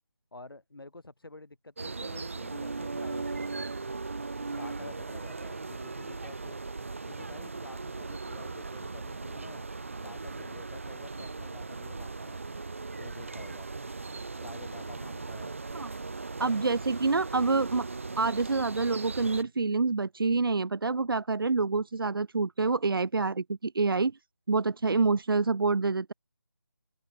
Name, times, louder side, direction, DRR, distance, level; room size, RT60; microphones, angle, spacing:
voice 1, 0.3-3.6 4.5-6.6 7.1-9.7 10.0-12.4 13.0-13.7 14.4-15.6, left 2 dB, 80° left, 5.3 m, -49 dB
sound 1, 1.8-19.4, right 3 dB, 35° right, 1.0 m, -38 dB
voice 2, 16.4-17.9 18.2-24.2 24.5-26.1, right 4 dB, 75° right, 0.6 m, -27 dB
open air
figure-of-eight pair, 175°, 12 cm